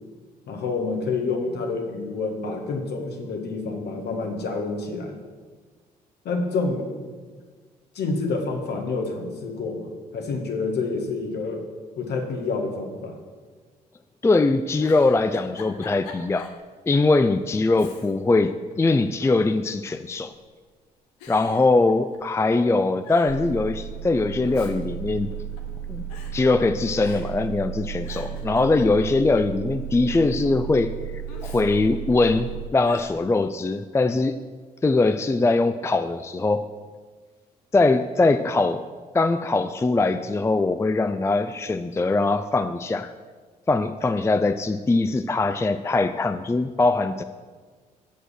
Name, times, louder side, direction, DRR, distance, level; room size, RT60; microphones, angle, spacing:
voice 1, 0.5-5.1 6.2-6.9 7.9-11.6 12.0-13.1, left 3 dB, 55° left, 2 dB, 1.8 m, -28 dB
voice 2, 14.2-16.5 16.9-20.3 21.3-25.3 25.9-26.0 26.3-30.9 31.4-34.3 34.8-36.7 37.7-38.8 39.1-43.1 43.7-47.2, left 3 dB, 15° left, 11 dB, 0.4 m, -22 dB
Giggle, 14.8-16.6 17.0-17.1 17.7-18.4 18.7-19.5 20.3-20.7 21.2-22.4 22.7-22.8 23.0-23.4 24.2-25.8 26.1-26.3 27.0-27.5 27.8-29.2 31.3-32.4 32.8-33.1, left 4 dB, 80° left, 1.1 m, -45 dB
sound 1, 23.3-32.7, right 9 dB, 55° right, 1.6 m, -34 dB
8.0 x 6.3 x 7.5 m, 1.5 s
figure-of-eight pair, 45°, 20 cm